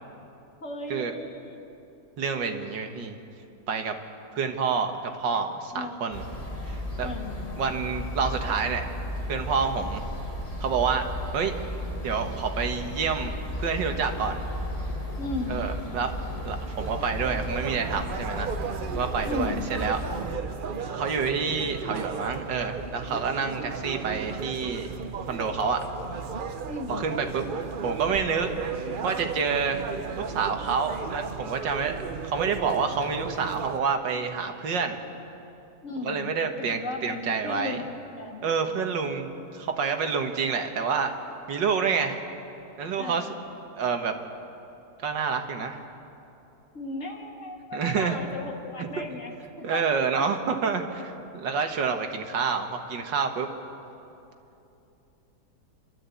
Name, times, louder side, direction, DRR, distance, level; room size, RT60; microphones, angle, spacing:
voice 1, 0.6-1.6 1.9-2.0 5.7-6.1 7.0-7.4 15.2-15.7 18.9-19.7 26.7-27.0 35.8-36.3 36.6-37.9 38.2-38.4 43.0-43.4 46.7-50.2, left 2 dB, 45° left, 2 dB, 2.3 m, -36 dB
voice 2, 2.2-3.2 3.7-3.9 4.3-6.2 6.7-7.1 7.6-8.8 9.3-10.0 10.6-11.5 12.0-14.4 15.5-16.1 16.4-20.0 20.9-24.9 25.3-25.8 26.9-28.5 29.0-29.8 30.2-35.0 36.0-37.8 38.4-41.1 41.5-42.2 42.8-43.3 43.8-44.1 45.0-45.8 47.7-48.2 48.8-49.0 49.6-53.5, right 5 dB, 85° right, 5 dB, 2.0 m, -28 dB
sound 1, 6.1-20.3, equal, 20° left, 1.9 m, -34 dB
sound 2, 16.8-33.8, right 5 dB, 70° right, 0.5 m, -35 dB
27.5 x 12.5 x 8.3 m, 2.9 s
omnidirectional pair, 1.9 m